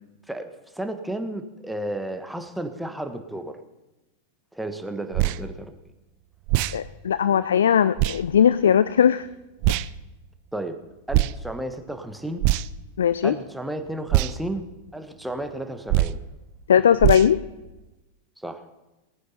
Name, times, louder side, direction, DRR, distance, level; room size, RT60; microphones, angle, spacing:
voice 1, 0.7-3.5 4.5-5.7 10.5-10.8 11.1-12.4 13.2-14.6 14.9-16.2 18.4-18.6, right 1 dB, 5° right, 7 dB, 1.4 m, -32 dB
sound 1, 5.1-5.4 6.5-6.8 8.0-8.2 9.6-9.9 11.1-11.3 12.4-12.8 14.1-14.3 15.9-16.2 17.0-17.3, right 16 dB, 45° right, 0.5 m, -21 dB
voice 2, 6.7-9.3 13.0-13.3 16.7-17.4, left 8 dB, 65° left, 15 dB, 0.4 m, -19 dB
19.0 x 9.5 x 5.6 m, 1.0 s
figure-of-eight pair, 90°, 0 cm